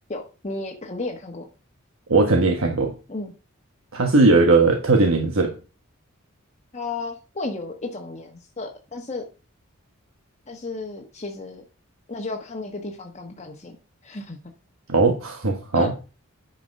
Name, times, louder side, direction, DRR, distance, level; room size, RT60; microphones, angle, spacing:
voice 1, 0.1-1.5 3.1-3.3 6.7-9.2 10.5-11.6 12.1-13.8 14.0-14.4 15.7-15.9, left 3 dB, 30° left, 0 dB, 1.2 m, -33 dB
voice 2, 2.1-2.9 3.9-5.5 14.9-15.9, right 3 dB, 75° right, 3 dB, 1.3 m, -18 dB
10.0 x 5.5 x 5.3 m, 0.34 s
head